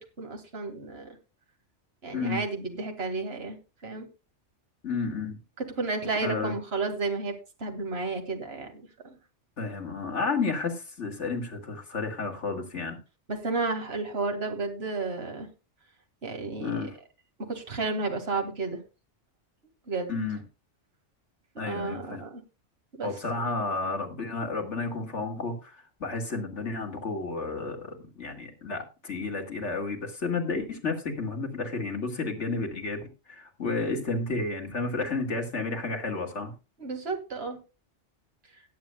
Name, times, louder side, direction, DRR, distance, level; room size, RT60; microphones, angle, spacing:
voice 1, 0.2-1.1 2.0-3.6 3.8-4.1 5.8-7.3 7.6-8.7 13.3-15.5 16.2-16.8 17.5-18.8 19.9-20.1 21.6-22.4 22.9-23.1 36.8-37.6, right 3 dB, 60° right, 4 dB, 2.2 m, -32 dB
voice 2, 4.8-5.4 6.2-6.6 9.6-13.0 16.6-17.0 20.1-20.4 21.6-22.2 23.0-36.5, left 3 dB, 75° left, 2 dB, 2.5 m, -31 dB
18.5 x 8.9 x 2.3 m, 0.30 s
omnidirectional pair, 1.2 m